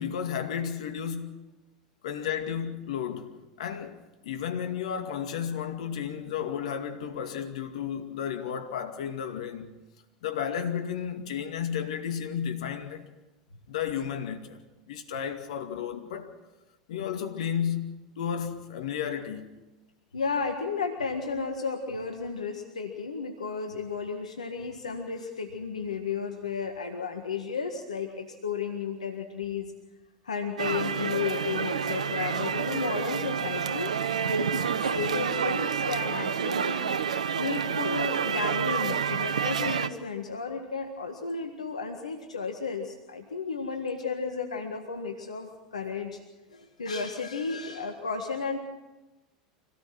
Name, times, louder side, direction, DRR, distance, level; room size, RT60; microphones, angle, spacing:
voice 1, 0.0-1.5 2.0-9.7 10.2-13.1 13.7-14.6 14.9-16.4 16.9-19.5, left 8 dB, 70° left, 2.3 m, -33 dB
voice 2, 20.1-29.7 30.2-33.9 34.2-36.8 37.4-46.2 46.5-48.6, left 5 dB, 85° left, 1.8 m, -33 dB
sound 1, 30.6-39.9, right 7 dB, 85° right, 1.0 m, -29 dB
26.0 x 18.0 x 6.1 m
hypercardioid pair, 85°, 4 cm